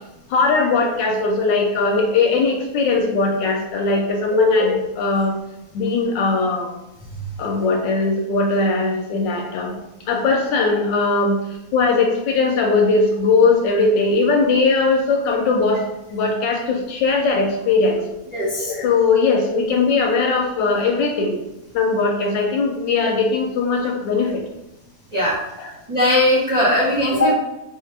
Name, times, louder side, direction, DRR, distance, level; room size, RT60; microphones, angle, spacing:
voice 1, 0.3-5.4 5.7-6.7 7.4-9.7 10.1-15.8 16.1-18.0 18.6-21.3 21.7-24.4 25.6-25.7, left 3 dB, 75° left, 2 dB, 1.2 m, -19 dB
voice 2, 18.3-18.7 25.1-25.4 25.9-27.3, left 1 dB, 25° right, -8 dB, 0.9 m, -18 dB
3.7 x 2.7 x 3.2 m, 0.93 s
omnidirectional pair, 2.1 m